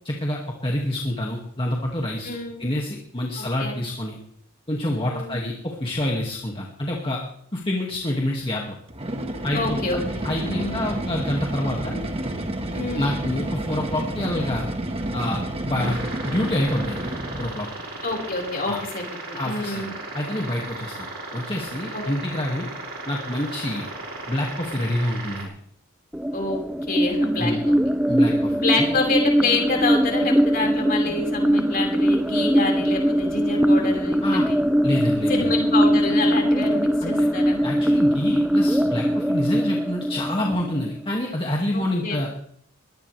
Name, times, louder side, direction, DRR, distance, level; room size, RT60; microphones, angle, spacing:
voice 1, 0.1-4.2 4.7-7.2 7.5-8.8 9.4-10.0 10.2-12.0 12.9-14.7 15.1-16.0 16.2-17.1 17.4-17.7 18.7-18.8 19.4-19.8 20.1-21.1 21.3-22.7 23.1-23.9 24.3-25.5 27.4-27.6 28.1-28.5 34.2-34.5 34.8-35.4 37.0-37.1 37.6-42.3, left 1 dB, 25° left, -1 dB, 2.2 m, -27 dB
voice 2, 2.2-2.6 3.4-3.8 5.0-5.4 9.5-10.9 12.7-13.1 18.0-19.9 21.9-22.0 26.3-26.6 26.9-27.8 28.6-34.6 35.3-37.6 41.7-42.2, left 3 dB, 40° left, 0 dB, 5.2 m, -27 dB
sound 1, 8.9-17.7, right 1 dB, 25° right, 1.6 m, -30 dB
sound 2, 15.7-25.4, right 2 dB, 50° right, 6.1 m, -36 dB
sound 3, 26.1-41.1, equal, 5° right, 0.6 m, -21 dB
22.5 x 18.5 x 3.4 m, 0.66 s
head